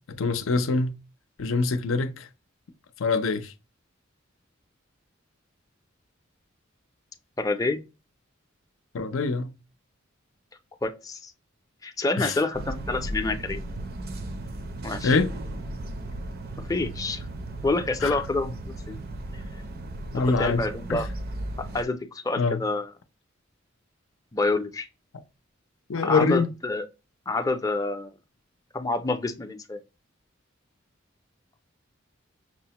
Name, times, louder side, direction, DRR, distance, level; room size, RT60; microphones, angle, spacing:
voice 1, 0.1-1.0 1.4-2.3 3.0-3.5 8.9-9.5 12.2-12.3 15.0-15.4 18.0-18.2 20.1-20.6 20.9-21.0 22.4-22.6 25.9-26.5, left 4 dB, 75° left, 0.5 m, -24 dB
voice 2, 7.4-7.8 10.8-11.3 11.8-13.6 14.8-15.2 16.7-17.3 17.6-18.6 18.9-19.0 19.3-19.4 20.2-21.1 21.7-22.9 24.3-24.9 26.0-26.8 27.3-28.1 28.7-29.8, left 2 dB, 15° left, 0.5 m, -27 dB
sound 1, 12.5-21.8, right 1 dB, 50° right, 0.5 m, -36 dB
6.0 x 2.1 x 2.8 m
head